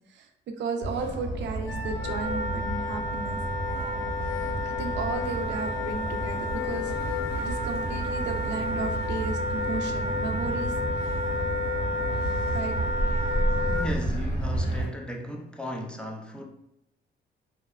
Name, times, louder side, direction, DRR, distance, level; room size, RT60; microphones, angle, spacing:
voice 1, 0.1-3.4 4.6-11.2 12.5-12.8, right 4 dB, 65° right, 5 dB, 0.4 m, -34 dB
Motor vehicle (road), 0.8-14.8, right 1 dB, 45° left, 1.5 m, -31 dB
Wind instrument woodwind instrument, 1.6-13.9, left 2 dB, 75° left, 0.5 m, -31 dB
voice 2, 13.7-16.4, equal, 5° left, 1 dB, 0.4 m, -35 dB
2.7 x 2.1 x 2.3 m, 0.78 s
cardioid pair, 90°, 20 cm